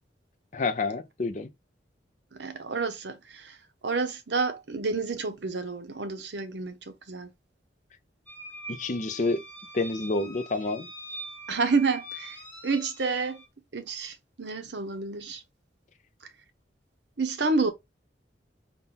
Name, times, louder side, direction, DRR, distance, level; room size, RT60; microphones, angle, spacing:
voice 1, 0.5-1.5 8.7-9.4 9.7-10.9, left 3 dB, 40° left, 0.5 m, -28 dB
voice 2, 2.3-3.6 3.8-7.3 11.5-12.4 12.6-13.4 13.7-15.4 17.2-17.7, right 4 dB, 70° right, 0.8 m, -29 dB
sound 1, 8.3-13.5, equal, 10° left, 0.9 m, -43 dB
4.1 x 2.2 x 3.8 m
head